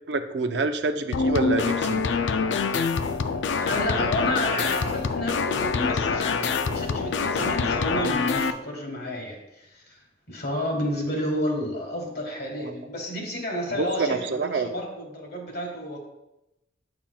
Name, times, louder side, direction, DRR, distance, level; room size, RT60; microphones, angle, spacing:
voice 1, 0.1-2.0 12.5-12.8 13.7-14.7, right 3 dB, 65° right, 7 dB, 0.5 m, -27 dB
sound 1, 1.1-8.5, left 5 dB, 75° left, 0.4 m, -25 dB
voice 2, 3.6-10.0 10.3-16.1, equal, 55° left, 2 dB, 1.6 m, -31 dB
8.7 x 5.8 x 2.3 m, 0.93 s
head